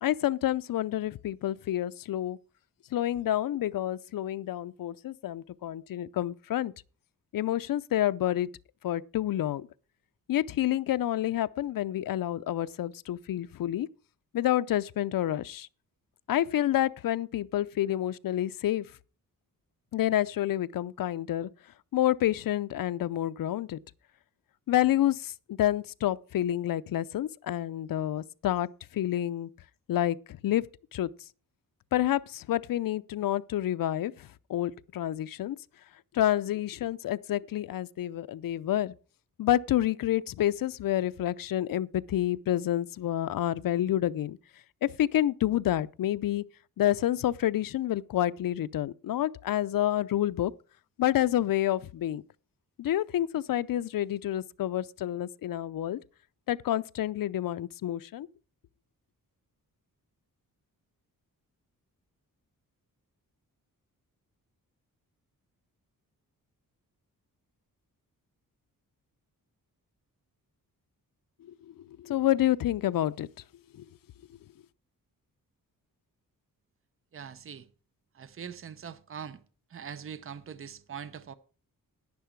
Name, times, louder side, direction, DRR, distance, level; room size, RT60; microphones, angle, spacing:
voice 1, 0.0-2.4 2.9-6.7 7.3-8.5 8.8-9.7 10.3-13.9 14.3-15.7 16.3-18.9 19.9-21.5 21.9-23.8 24.7-28.7 28.9-29.5 29.9-31.1 31.9-35.6 36.1-38.9 39.4-44.4 44.8-46.4 46.8-50.5 51.0-52.2 52.8-56.0 56.5-58.3 71.4-73.3 73.7-73.8, left 12 dB, 70° left, 0.5 m, -28 dB
voice 2, 77.1-77.7 78.1-79.4 79.7-81.3, right 7 dB, 40° right, 0.7 m, -42 dB
10.5 x 10.0 x 4.5 m
wide cardioid pair, 170°, 35 cm